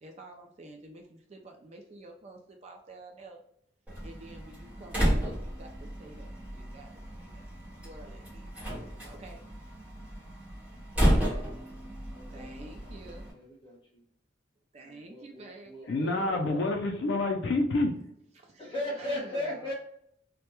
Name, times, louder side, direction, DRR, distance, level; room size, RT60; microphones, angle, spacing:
voice 1, 0.0-3.4 4.0-8.5 9.0-9.5 12.3-13.3 14.7-16.0 18.3-19.7, right 2 dB, 35° right, 2 dB, 0.3 m, -50 dB
Slam, 3.9-13.3, equal, 10° right, 1.0 m, -32 dB
voice 2, 12.1-13.1 13.3-14.0 14.8-16.6 18.6-19.7, left 1 dB, 25° left, -3 dB, 1.0 m, -38 dB
voice 3, 15.9-17.9, left 2 dB, 60° left, 3 dB, 0.4 m, -27 dB
2.2 x 2.1 x 2.8 m, 0.69 s
head